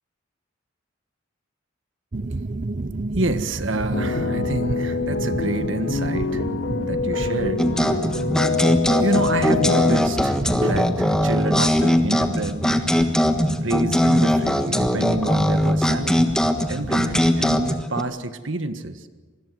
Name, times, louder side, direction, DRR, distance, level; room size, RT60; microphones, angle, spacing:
sound 1, 2.1-17.8, right 2 dB, 40° right, 0.7 m, -31 dB
voice 1, 3.1-8.0 9.0-12.6 13.6-16.4 16.7-19.1, right 2 dB, 65° right, 10 dB, 1.6 m, -28 dB
sound 2, 3.9-10.0, left 4 dB, 60° left, 1.5 m, -25 dB
sound 3, 7.6-18.0, left 1 dB, 5° left, 1.4 m, -20 dB
26.0 x 21.0 x 7.8 m, 1.4 s
head